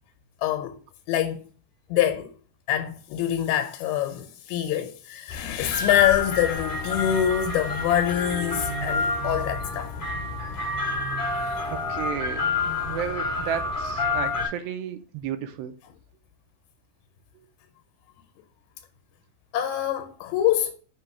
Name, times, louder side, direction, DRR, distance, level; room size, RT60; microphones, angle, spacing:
voice 1, 0.4-0.8 1.1-1.4 1.9-2.3 2.7-10.0 11.4-11.6 19.5-20.7, left 11 dB, 90° left, 2.5 m, -25 dB
sound 1, 5.3-14.5, left 3 dB, 35° left, 1.9 m, -28 dB
voice 2, 11.7-12.5 12.9-15.7, right 9 dB, 85° right, 2.4 m, -33 dB
6.1 x 2.9 x 5.6 m
omnidirectional pair, 4.2 m